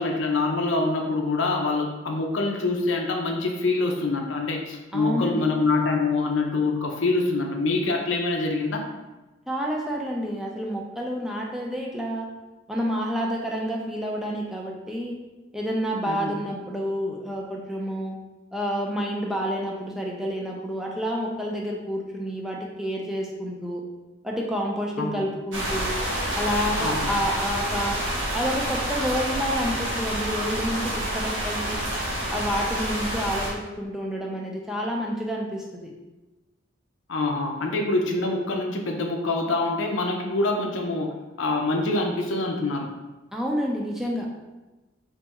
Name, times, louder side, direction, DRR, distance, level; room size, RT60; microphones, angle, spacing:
voice 1, 0.0-8.8 16.0-16.4 25.0-25.3 26.8-27.1 37.1-41.1 41.4-42.9, left 3 dB, 85° left, 2 dB, 0.6 m, -25 dB
voice 2, 4.9-5.4 9.5-12.3 12.7-15.2 15.5-18.1 18.5-23.8 24.2-25.9 26.3-28.0 28.3-31.8 32.3-35.9 43.3-44.3, equal, ahead, -1 dB, 0.6 m, -29 dB
sound 1, 25.5-33.5, right 1 dB, 90° right, 1.1 m, -28 dB
4.1 x 3.0 x 3.5 m, 1.1 s
head